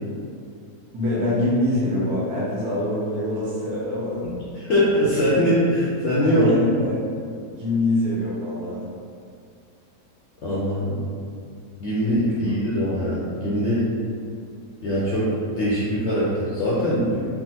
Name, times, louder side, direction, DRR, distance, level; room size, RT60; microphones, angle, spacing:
voice 1, 0.9-4.3 6.2-7.0 7.5-8.8 12.2-12.4, left 1 dB, 70° right, -7 dB, 1.3 m, -24 dB
voice 2, 4.2-6.5 10.4-11.0 11.8-13.9 14.8-17.3, equal, 70° left, -8 dB, 0.7 m, -22 dB
3.6 x 2.0 x 2.8 m, 2.3 s
omnidirectional pair, 1.7 m